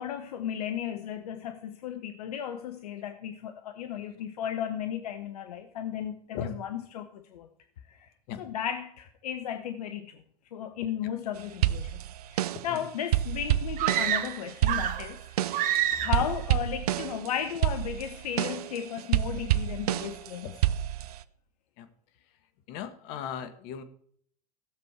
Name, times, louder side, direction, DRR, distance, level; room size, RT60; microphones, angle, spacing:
voice 1, 0.0-7.5 7.9-8.1 8.4-10.2 10.5-12.0 12.3-15.2 16.0-20.5, left 9 dB, 75° left, 0.9 m, -35 dB
sound 1, 11.6-12.8 13.1-15.8 16.1-17.3 17.6-20.3 20.6-21.2, right 13 dB, 75° right, 0.6 m, -28 dB
sound 2, 13.8-15.1 15.5-16.3, right 11 dB, 45° right, 1.0 m, -28 dB
voice 2, 22.7-23.8, left 8 dB, 55° left, 1.5 m, -37 dB
16.0 x 7.0 x 4.7 m
hypercardioid pair, 90°, 20 cm